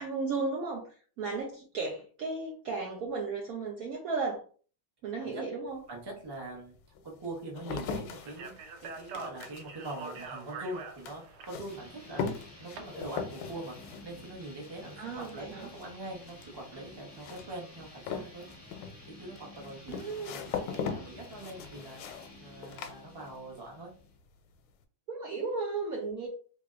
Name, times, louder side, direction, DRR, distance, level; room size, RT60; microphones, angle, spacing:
voice 1, 0.0-4.4 5.0-5.8 15.0-15.7 19.9-20.3 25.1-26.3, right 4 dB, 85° right, 1 dB, 0.7 m, -35 dB
sound 1, 5.7-5.8 6.5-23.7 24.0-24.5, left 6 dB, 85° left, 1.4 m, -41 dB
voice 2, 5.9-6.8 7.0-8.5 8.8-13.8 14.0-18.4 19.1-22.0 22.4-23.9, right 2 dB, 25° right, -1 dB, 0.4 m, -43 dB
Speech, 8.2-12.8, right 4 dB, 70° right, 1.2 m, -44 dB
sound 2, 11.7-24.2, left 1 dB, 15° left, 0.6 m, -52 dB
3.4 x 3.4 x 2.5 m, 0.41 s
omnidirectional pair, 2.2 m